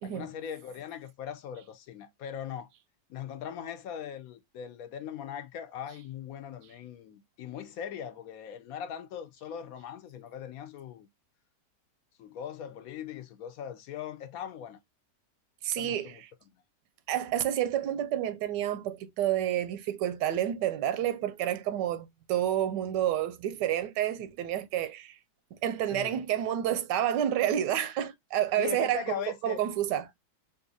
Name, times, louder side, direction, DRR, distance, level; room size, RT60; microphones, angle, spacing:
voice 1, 0.0-2.7 3.1-11.1 12.2-14.8 15.8-16.2 25.9-26.2 28.6-29.6, left 9 dB, 70° left, 0.9 m, -40 dB
voice 2, 15.6-16.1 17.1-25.2 25.5-30.1, right 11 dB, 90° right, 1.2 m, -29 dB
3.8 x 2.6 x 2.6 m
omnidirectional pair, 1.8 m